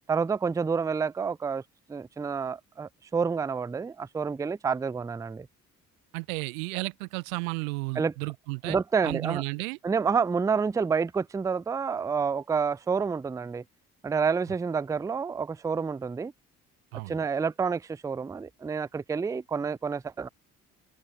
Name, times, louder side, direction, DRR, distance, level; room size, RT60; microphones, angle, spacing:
voice 1, 0.1-1.6 1.9-5.5 8.0-8.1 8.7-9.4 9.8-13.6 14.0-16.3 17.1-20.3, right 5 dB, 10° right, 0.5 m, -28 dB
voice 2, 6.1-8.8 9.0-9.8 16.9-17.2, right 28 dB, 65° right, 0.5 m, -33 dB
figure-of-eight pair, 45°, 46 cm